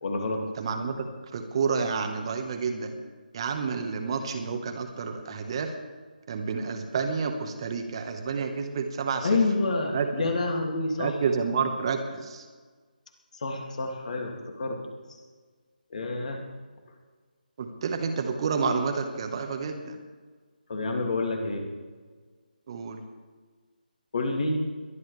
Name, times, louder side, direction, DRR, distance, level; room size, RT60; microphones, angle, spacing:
voice 1, 0.0-0.4 9.2-11.1 13.3-14.8 15.9-16.4 20.7-21.7 24.1-24.7, left 3 dB, 50° left, 2 dB, 2.6 m, -28 dB
voice 2, 0.5-2.9 3.3-5.7 6.3-9.4 9.9-10.3 11.0-12.5 17.6-20.0 22.7-23.0, right 5 dB, 35° right, 5 dB, 1.4 m, -29 dB
22.0 x 11.5 x 3.4 m, 1.5 s
figure-of-eight pair, 155°, 5 cm